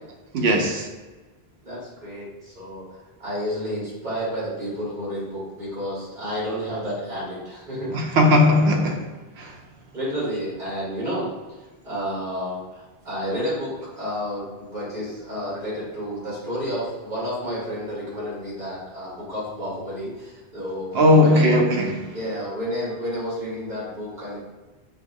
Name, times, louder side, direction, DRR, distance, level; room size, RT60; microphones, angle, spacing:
voice 1, 0.3-0.9 7.9-9.1 9.4-9.6 20.9-22.2, left 1 dB, 85° right, 0.9 m, -18 dB
voice 2, 1.6-2.9 3.2-8.2 9.9-11.3 11.8-21.6 22.1-24.4, equal, 50° right, 1.8 m, -30 dB
4.9 x 2.3 x 2.6 m
omnidirectional pair, 1.0 m